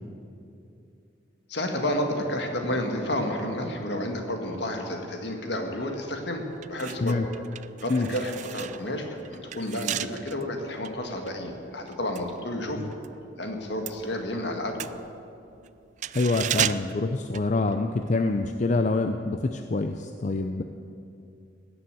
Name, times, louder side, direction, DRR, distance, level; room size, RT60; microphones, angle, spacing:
voice 1, 1.5-6.4 6.7-7.2 7.8-12.8 13.4-14.9, left 1 dB, 65° left, 3 dB, 1.9 m, -31 dB
sound 1, 5.9-6.1 6.5-13.2 13.4-18.1 18.4-18.5, right 10 dB, 40° right, 0.3 m, -35 dB
voice 2, 16.1-20.6, left 3 dB, 40° left, 6 dB, 0.5 m, -26 dB
17.5 x 7.0 x 9.0 m, 2.6 s
head